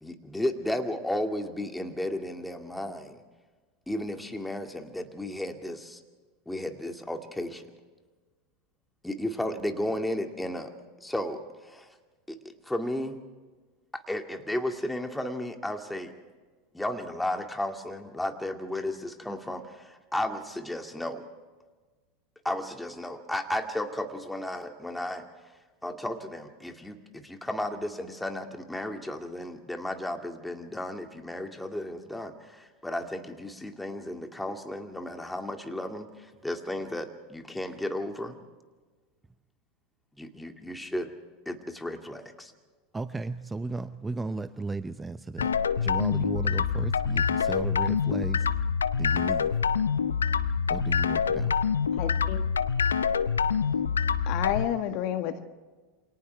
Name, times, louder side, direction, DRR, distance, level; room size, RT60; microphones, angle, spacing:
voice 1, 0.0-3.2 3.9-6.0 6.5-7.6 9.0-10.7 11.0-11.9 12.3-12.4 12.7-13.2 13.9-16.1 16.7-21.2 22.4-25.3 25.8-38.4 40.2-41.1 41.5-42.5, left 1 dB, 5° left, 5 dB, 2.3 m, -34 dB
voice 2, 42.9-48.5 49.0-49.5 50.7-51.6, right 3 dB, 15° right, 13 dB, 0.7 m, -35 dB
sound 1, 45.4-54.7, left 6 dB, 80° left, 0.7 m, -26 dB
voice 3, 51.9-52.4 54.3-55.4, left 11 dB, 55° left, 8 dB, 1.5 m, -30 dB
28.5 x 26.0 x 3.5 m, 1.4 s
figure-of-eight pair, 85°, 0 cm